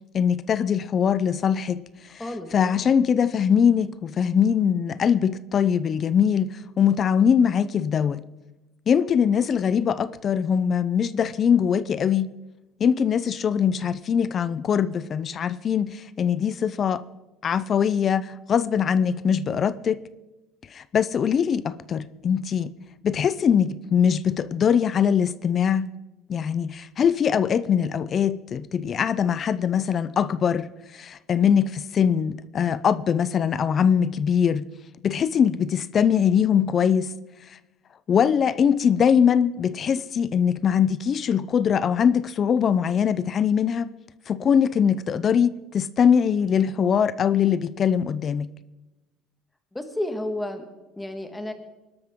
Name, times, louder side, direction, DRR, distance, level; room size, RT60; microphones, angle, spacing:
voice 1, 0.1-1.8 2.5-8.2 8.9-12.3 12.8-17.0 17.4-20.0 20.7-22.7 23.0-25.9 26.3-34.7 35.0-37.1 38.1-43.9 44.3-48.5, left 7 dB, 35° left, 0.5 m, -22 dB
voice 2, 49.7-50.6 51.0-51.5, left 1 dB, 10° left, 1.5 m, -31 dB
23.5 x 12.5 x 3.7 m
cardioid pair, 150°, 0 cm